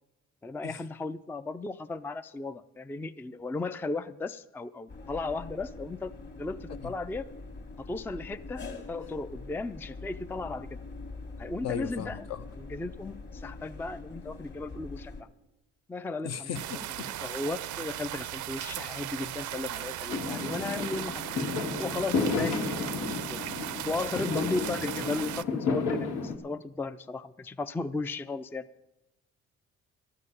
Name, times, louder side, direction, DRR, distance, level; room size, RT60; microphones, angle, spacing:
voice 1, 0.4-6.1 6.4-7.3 7.8-10.8 11.4-12.3 12.6-15.3 15.9-16.6 17.0-21.2 21.7-28.7, left 3 dB, 5° left, 0.4 m, -36 dB
sound 1, 4.9-15.2, left 3 dB, 35° left, 1.7 m, -44 dB
voice 2, 11.6-12.4 16.2-17.1 22.4-22.5, left 8 dB, 60° left, 0.9 m, -36 dB
sound 2, 16.5-25.4, right 13 dB, 75° right, 0.6 m, -37 dB
Fireworks, 20.1-26.3, left 4 dB, 85° left, 2.0 m, -32 dB
13.0 x 6.7 x 9.9 m
cardioid pair, 90°, 30 cm